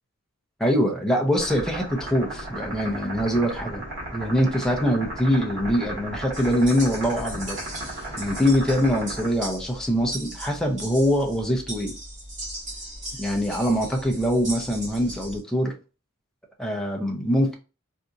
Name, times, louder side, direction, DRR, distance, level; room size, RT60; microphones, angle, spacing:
voice 1, 0.6-3.8 4.1-7.6 8.2-12.0 13.1-15.7 16.6-17.5, equal, 5° left, 0 dB, 0.6 m, -23 dB
sound 1, 1.4-9.3, right 1 dB, 60° right, 1.4 m, -35 dB
sound 2, 6.3-15.4, right 1 dB, 35° right, 1.9 m, -38 dB
4.1 x 2.6 x 2.4 m, 0.33 s
head